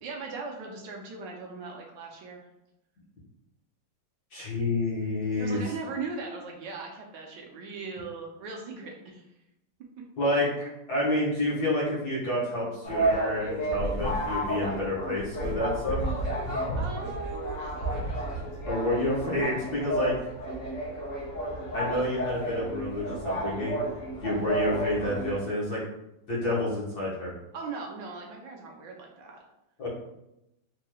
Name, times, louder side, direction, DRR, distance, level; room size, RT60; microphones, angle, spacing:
voice 1, 0.0-2.4 5.4-9.2 16.8-17.7 27.5-29.4, right 4 dB, 75° right, 0 dB, 1.2 m, -39 dB
voice 2, 4.3-5.6 10.2-16.0 18.7-20.1 21.7-23.8 24.2-25.8 26.3-27.3 29.8-29.9, left 1 dB, 55° left, -6 dB, 1.6 m, -29 dB
sound 1, 12.8-25.4, right 1 dB, 75° left, 2.0 m, -31 dB
4.6 x 3.0 x 2.2 m, 0.86 s
omnidirectional pair, 2.1 m